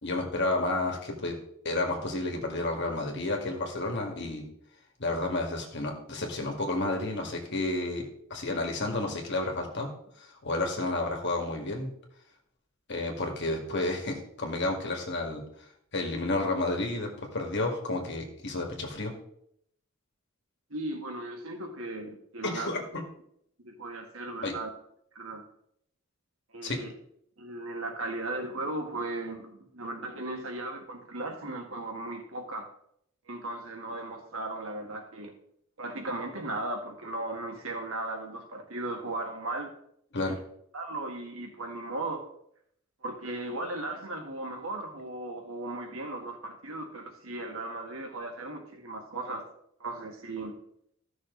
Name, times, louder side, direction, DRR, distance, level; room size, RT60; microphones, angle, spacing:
voice 1, 0.0-1.4 1.6-4.5 5.0-9.9 10.2-11.9 12.9-15.4 15.9-19.1 22.4-22.8 24.4-24.5 26.6-26.8 40.1-40.4, left 2 dB, 55° left, 2 dB, 2.0 m, -31 dB
voice 2, 20.7-22.7 23.6-24.7 25.2-25.4 26.5-26.9 27.4-32.7 33.3-35.3 35.8-39.7 40.2-40.3 40.7-42.2 43.0-49.4 49.8-50.5, right 2 dB, 80° right, 3 dB, 1.8 m, -36 dB
14.5 x 6.2 x 3.9 m, 0.71 s
head